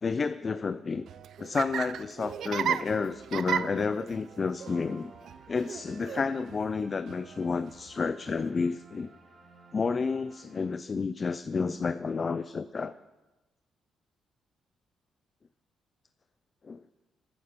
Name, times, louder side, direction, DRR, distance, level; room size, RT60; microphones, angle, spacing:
voice 1, 0.0-1.0 1.4-5.1 5.5-9.1 9.7-12.9 16.6-16.8, left 4 dB, 25° left, 13 dB, 0.4 m, -30 dB
Laughter, 1.0-8.5, right 9 dB, 60° right, 0.5 m, -36 dB
sound 1, 4.6-11.2, right 2 dB, 25° right, 2.3 m, -56 dB
15.0 x 10.5 x 6.7 m, 1.1 s
cardioid pair, 170°, 0 cm